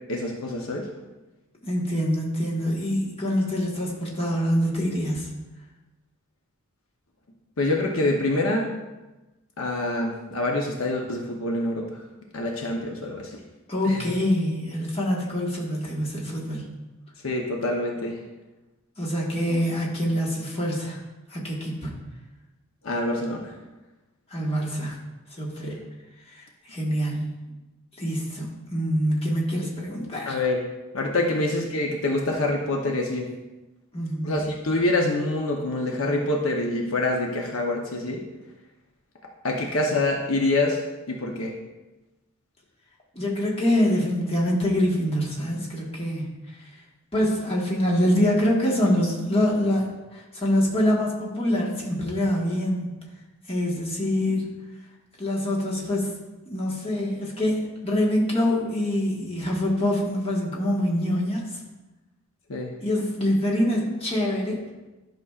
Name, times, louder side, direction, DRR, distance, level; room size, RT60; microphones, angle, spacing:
voice 1, 0.1-0.9 7.6-8.7 9.6-12.0 12.3-13.4 13.8-14.0 17.2-18.2 22.8-23.5 25.6-25.8 30.3-30.6 30.9-33.3 34.2-38.2 39.4-40.8 41.1-41.5 62.5-62.7, left 2 dB, 65° left, 1 dB, 0.8 m, -26 dB
voice 2, 1.6-5.3 13.7-16.7 19.0-21.0 21.3-21.9 24.3-25.0 25.3-25.8 26.3-27.4 28.0-30.4 33.9-34.5 43.1-46.3 47.1-53.0 53.5-54.5 55.2-56.1 56.5-61.4 62.8-64.6, equal, 25° left, -4 dB, 1.4 m, -25 dB
11.5 x 5.9 x 2.4 m, 1.1 s
head